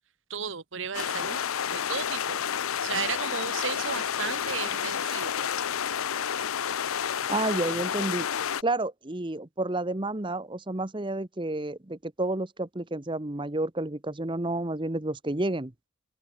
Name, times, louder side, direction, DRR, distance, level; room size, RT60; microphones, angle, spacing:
voice 1, 0.3-2.4 2.8-5.5 7.4-7.6, right 6 dB, 60° right, 1.2 m, -35 dB
sound 1, 0.9-8.6, left 8 dB, 80° left, 0.6 m, -30 dB
voice 2, 7.3-8.3 8.6-15.7, right 2 dB, 25° right, 1.0 m, -30 dB
open air
head